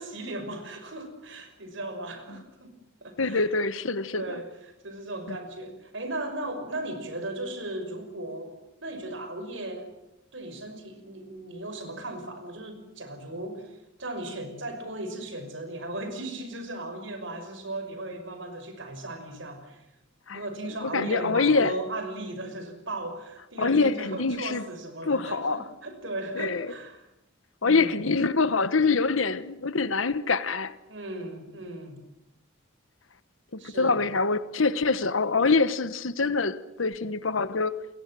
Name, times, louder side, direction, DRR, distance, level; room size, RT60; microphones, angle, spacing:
voice 1, 0.0-2.7 3.0-3.5 4.1-8.5 8.8-9.9 10.3-19.9 20.3-27.1 27.6-27.9 30.9-32.0 33.6-34.0, right 1 dB, 65° right, 5.8 m, -37 dB
voice 2, 3.2-4.2 20.3-20.4 20.8-21.7 23.6-24.6 25.1-25.6 26.4-26.7 27.6-30.7 33.5-37.8, left 4 dB, 80° left, 1.2 m, -25 dB
29.0 x 22.5 x 7.7 m
head